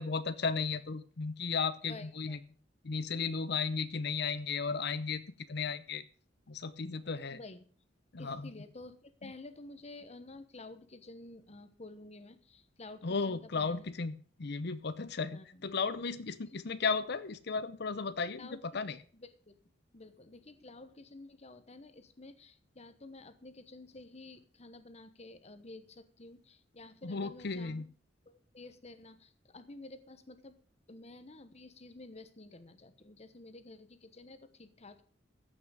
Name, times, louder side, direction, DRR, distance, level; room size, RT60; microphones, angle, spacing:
voice 1, 0.0-2.4 2.8-5.2 5.5-6.0 6.5-7.4 8.1-8.5 9.2-9.3 13.0-18.5 18.7-19.0 27.0-27.8, left 5 dB, 60° left, 14 dB, 0.7 m, -35 dB
voice 2, 1.9-2.4 7.3-7.6 8.2-13.8 15.3-15.6 16.5-16.6 18.4-18.6 19.1-19.5 19.9-27.9 28.3-30.6 30.9-35.0, left 2 dB, 35° left, 11 dB, 1.1 m, -51 dB
14.5 x 6.1 x 6.5 m, 0.43 s
head